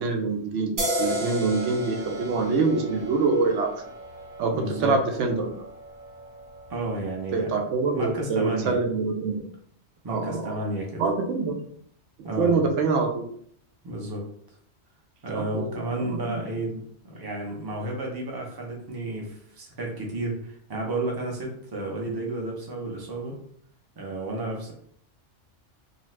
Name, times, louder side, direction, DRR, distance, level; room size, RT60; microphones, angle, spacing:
voice 1, 0.0-3.8 4.4-4.5 4.8-5.5 7.3-9.4 10.1-10.6 11.0-11.5 12.2-13.2 15.3-15.7 16.0-16.4, right 4 dB, 80° right, 3 dB, 0.9 m, -25 dB
sound 1, 0.8-8.1, equal, 55° right, 0.9 m, -35 dB
voice 2, 4.5-5.0 6.7-7.6 7.9-8.8 10.0-11.0 12.2-12.6 13.8-14.3 15.2-23.4 24.0-24.7, right 2 dB, 25° right, -1 dB, 0.5 m, -32 dB
2.7 x 2.4 x 3.1 m, 0.64 s
omnidirectional pair, 1.3 m